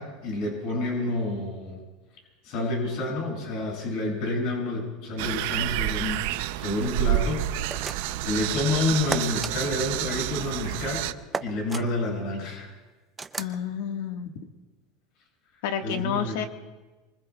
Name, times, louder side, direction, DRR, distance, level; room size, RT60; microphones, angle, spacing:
voice 1, 0.0-1.8 2.4-11.1 11.4-12.7 15.8-16.4, left 2 dB, 60° left, -1 dB, 6.8 m, -29 dB
sound 1, 5.2-11.1, right 13 dB, 70° right, 0.6 m, -29 dB
sound 2, 7.7-8.3 9.1-9.5 11.3-11.9 13.2-13.6, right 4 dB, 15° right, 0.6 m, -33 dB
voice 2, 13.4-14.3 15.6-16.4, left 8 dB, 80° left, 4 dB, 1.6 m, -30 dB
24.5 x 24.5 x 2.4 m, 1.2 s
supercardioid pair, 125°, 0 cm